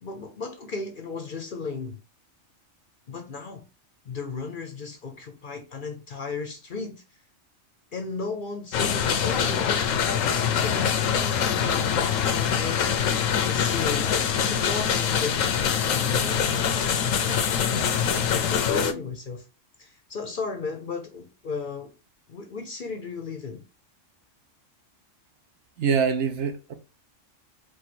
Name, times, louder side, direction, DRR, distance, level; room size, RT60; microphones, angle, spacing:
voice 1, 0.0-2.0 3.1-3.6 4.0-7.0 7.9-19.4 19.8-21.9 22.3-23.6, left 4 dB, 50° left, 0.7 m, -36 dB
sound 1, 8.7-18.9, left 7 dB, 85° left, 1.0 m, -24 dB
voice 2, 25.8-26.7, right 6 dB, 65° right, 0.9 m, -24 dB
4.7 x 2.3 x 4.3 m
omnidirectional pair, 1.3 m